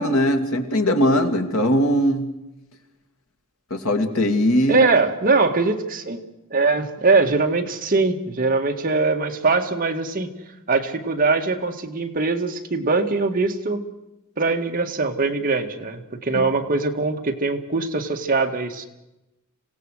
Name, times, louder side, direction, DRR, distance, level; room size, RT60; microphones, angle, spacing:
voice 1, 0.0-2.3 3.7-4.8 16.3-16.5, equal, 70° left, 5 dB, 2.5 m, -20 dB
voice 2, 4.7-6.2 6.5-10.3 10.7-13.8 14.4-18.9, right 3 dB, 40° right, 3 dB, 2.0 m, -22 dB
26.5 x 17.5 x 6.5 m, 0.93 s
head